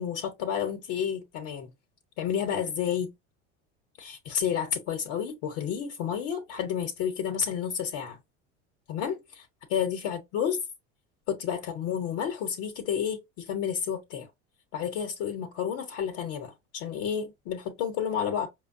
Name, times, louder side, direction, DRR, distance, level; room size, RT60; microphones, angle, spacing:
voice 1, 0.0-1.7 2.2-3.1 4.0-8.2 8.9-9.4 9.7-10.6 11.3-14.3 14.7-18.5, left 8 dB, 70° left, 0.9 m, -30 dB
5.0 x 2.2 x 2.5 m
supercardioid pair, 85°, 36 cm